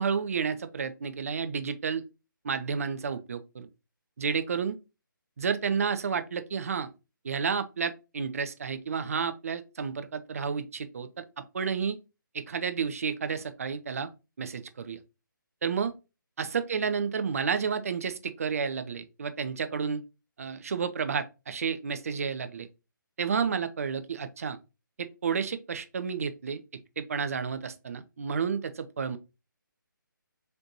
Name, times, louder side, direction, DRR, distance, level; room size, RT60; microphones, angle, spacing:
voice 1, 0.0-2.0 2.4-3.7 4.2-4.8 5.4-6.9 7.2-12.0 12.3-14.1 14.4-15.0 15.6-15.9 16.4-20.0 20.4-22.7 23.2-24.6 25.0-26.6 27.0-29.2, right 6 dB, 45° right, 0.5 m, -31 dB
3.9 x 3.4 x 2.9 m
figure-of-eight pair, 140°, 11 cm